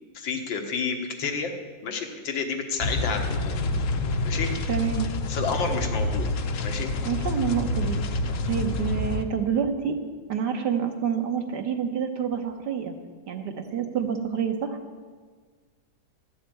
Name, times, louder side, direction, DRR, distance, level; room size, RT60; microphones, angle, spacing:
voice 1, 0.1-1.5 1.8-3.6 4.3-4.7 5.3-6.3 6.6-6.9, left 5 dB, 85° left, 4 dB, 2.0 m, -30 dB
sound 1, 2.8-9.2, left 2 dB, 55° left, 0.9 m, -27 dB
voice 2, 4.7-5.1 7.0-8.0 8.4-10.0 10.3-12.9 13.3-14.8, right 7 dB, 65° right, 5 dB, 1.5 m, -27 dB
13.0 x 6.7 x 8.9 m, 1.5 s
omnidirectional pair, 2.0 m